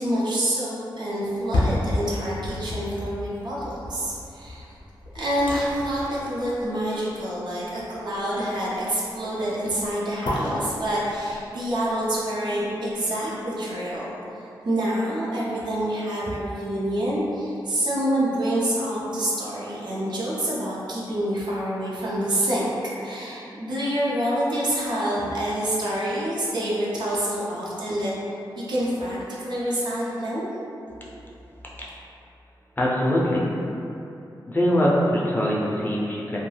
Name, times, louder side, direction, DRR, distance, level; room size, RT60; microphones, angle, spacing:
voice 1, 0.0-4.7 5.1-14.1 14.6-22.6 23.0-28.1 28.7-30.5, right 1 dB, 65° right, -7 dB, 0.6 m, -27 dB
sound 1, 1.2-13.3 13.7-13.8, left 1 dB, 85° left, 0.5 m, -32 dB
voice 2, 32.8-33.5 34.5-36.4, equal, 25° left, -5 dB, 0.4 m, -22 dB
2.3 x 2.1 x 3.1 m, 2.8 s
wide cardioid pair, 85°, 8 cm